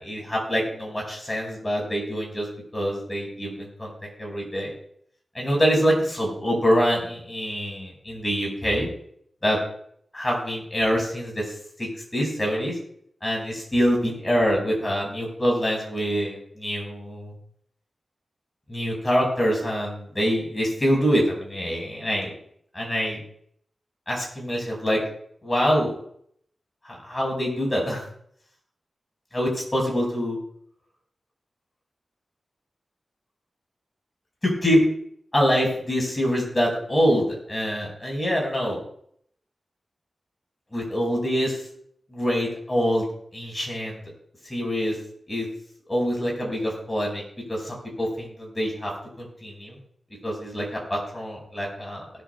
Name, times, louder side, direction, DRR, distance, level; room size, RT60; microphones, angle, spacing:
voice 1, 0.0-2.5 2.7-3.9 4.2-4.7 5.3-8.9 9.4-9.6 10.1-11.5 11.8-12.7 13.2-17.3 18.7-22.3 22.7-23.2 24.1-25.0 25.4-26.0 26.8-28.0 29.3-30.4 34.4-34.8 35.3-38.8 40.7-41.6 42.1-43.1 43.3-44.0 44.5-45.0 45.3-45.5 45.9-47.2 47.5-48.9 49.2-49.8 50.2-52.0, equal, 20° left, -1 dB, 5.2 m, -25 dB
19.5 x 11.0 x 2.3 m, 0.66 s
wide cardioid pair, 105°, 0 cm